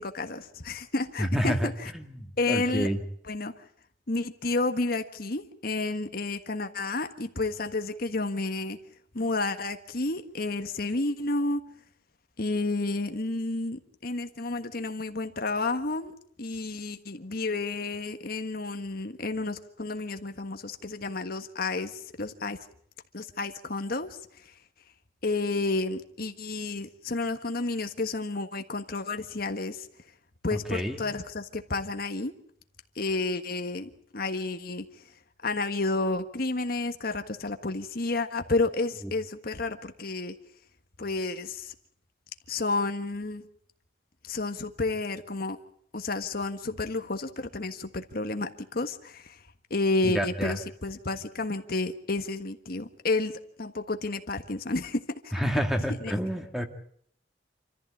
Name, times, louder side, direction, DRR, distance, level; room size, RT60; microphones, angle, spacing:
voice 1, 0.0-1.9 2.4-2.9 3.2-3.5 4.1-8.8 9.1-11.6 12.4-16.1 16.4-22.6 23.1-24.2 25.2-29.9 30.4-32.3 32.9-34.8 35.4-40.3 41.0-41.7 42.5-43.4 44.2-45.6 45.9-49.4 49.7-55.4 56.0-56.1, left 3 dB, 55° left, 7 dB, 1.5 m, -31 dB
voice 2, 1.2-1.7 1.9-3.0 30.7-31.0 50.0-50.5 55.3-56.6, equal, ahead, 5 dB, 2.1 m, -28 dB
27.5 x 14.5 x 8.4 m, 0.67 s
head